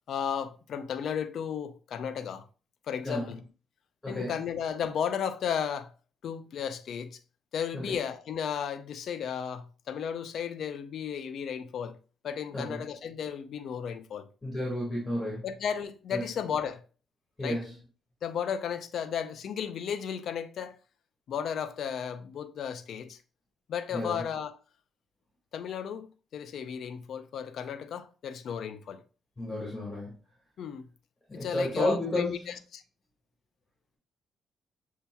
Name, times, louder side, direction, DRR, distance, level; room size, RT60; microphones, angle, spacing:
voice 1, 0.1-2.4 2.9-3.4 4.1-5.9 6.2-7.2 7.5-12.0 12.2-14.3 15.4-16.8 17.4-17.6 18.2-20.8 21.3-23.2 23.7-24.5 25.5-26.1 26.3-29.0 30.6-30.8 31.3-32.8, left 8 dB, 65° left, 0.4 m, -34 dB
voice 2, 4.0-4.3 7.7-8.0 12.5-12.8 14.4-15.4 16.1-16.2 17.4-17.7 23.9-24.2 29.4-30.1 31.3-32.4, left 1 dB, 20° left, 1.7 m, -31 dB
6.7 x 2.8 x 2.2 m
cardioid pair, 90°, 0 cm